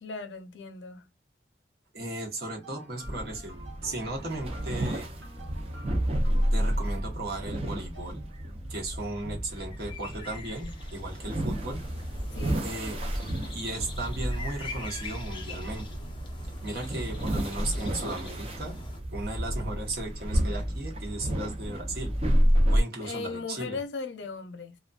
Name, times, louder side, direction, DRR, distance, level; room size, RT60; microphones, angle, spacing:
voice 1, 0.0-1.1 12.3-12.7 23.0-24.8, left 4 dB, 85° left, 0.6 m, -37 dB
voice 2, 1.9-3.5 3.8-5.1 6.5-8.3 8.7-11.8 12.6-13.0 13.5-16.0 16.6-18.8 19.1-22.1 22.7-23.8, right 2 dB, 55° right, 1.0 m, -36 dB
sound 1, 2.6-8.4, right 1 dB, 85° right, 1.0 m, -50 dB
sound 2, 3.0-22.8, equal, 35° right, 0.5 m, -30 dB
sound 3, 9.5-19.0, left 3 dB, 25° left, 0.5 m, -44 dB
2.5 x 2.2 x 2.2 m
head